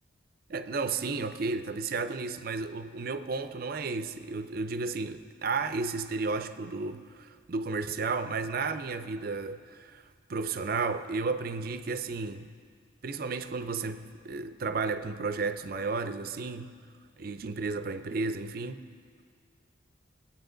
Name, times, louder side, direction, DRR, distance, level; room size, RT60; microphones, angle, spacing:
voice 1, 0.5-10.0 10.3-12.5 13.0-16.7 17.2-18.8, right 4 dB, 50° right, 10 dB, 0.5 m, -33 dB
22.0 x 8.8 x 3.9 m, 2.1 s
head